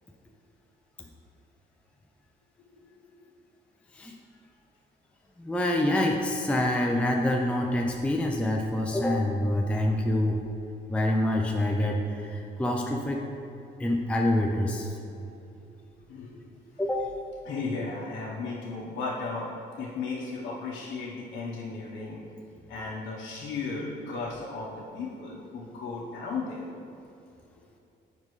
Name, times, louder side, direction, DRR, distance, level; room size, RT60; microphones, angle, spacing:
voice 1, 5.4-10.4 10.9-13.2 13.8-14.9 16.8-17.1, left 1 dB, 5° left, 0 dB, 0.5 m, -26 dB
voice 2, 17.4-19.5 19.8-22.2 22.7-26.7, left 3 dB, 70° left, -6 dB, 1.1 m, -35 dB
7.2 x 5.2 x 3.2 m, 2.7 s
cardioid pair, 90°, 20 cm